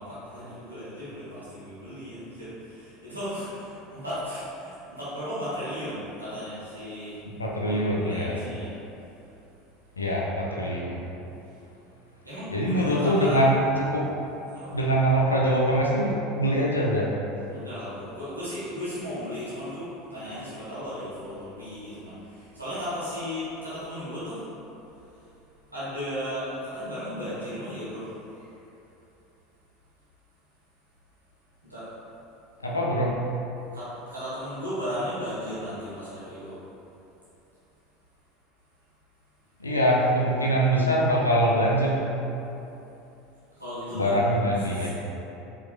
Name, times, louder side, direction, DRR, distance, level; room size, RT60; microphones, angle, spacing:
voice 1, 0.0-7.2 7.7-8.7 9.2-9.3 12.2-13.4 14.5-14.8 17.5-24.5 25.1-25.3 25.7-28.5 31.6-31.9 33.7-36.6 43.5-44.1 44.6-44.9, equal, 90° right, -13 dB, 1.2 m, -35 dB
voice 2, 7.3-8.4 10.0-11.0 12.5-14.1 14.7-17.1 32.6-33.2 39.6-42.2 43.9-44.9, equal, 85° left, -3 dB, 0.4 m, -23 dB
4.6 x 2.9 x 2.4 m, 2.8 s
figure-of-eight pair, 75°, 0 cm